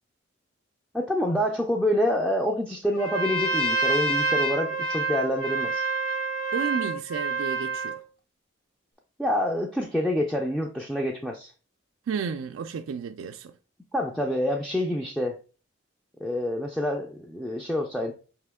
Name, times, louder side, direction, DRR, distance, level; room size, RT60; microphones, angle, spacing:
voice 1, 0.9-5.8 9.2-11.5 13.9-15.4 16.2-18.1, left 1 dB, ahead, 0.4 m, -27 dB
Trumpet, 2.9-8.0, right 3 dB, 45° left, 0.9 m, -27 dB
voice 2, 6.5-8.0 12.1-13.5, right 6 dB, 85° right, 0.3 m, -32 dB
4.9 x 2.9 x 3.4 m
head